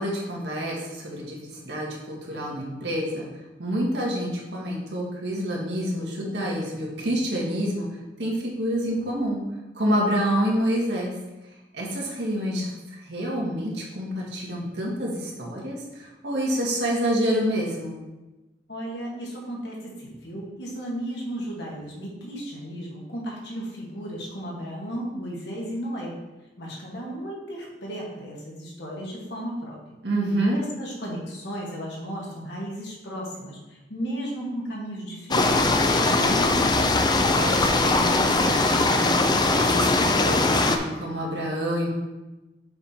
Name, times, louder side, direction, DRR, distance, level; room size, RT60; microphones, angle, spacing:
voice 1, 0.0-1.4 1.6-3.2 3.6-7.9 8.2-9.4 9.8-11.1 11.7-12.7 13.1-18.0 30.0-30.6 37.3-39.0 39.5-41.9, equal, 80° right, -3 dB, 1.8 m, -27 dB
voice 2, 18.7-26.2 26.6-29.8 30.5-36.8, equal, 75° left, -3 dB, 1.8 m, -34 dB
sound 1, 35.3-40.8, left 2 dB, 25° left, 0.5 m, -21 dB
6.6 x 4.2 x 4.4 m, 1.1 s
head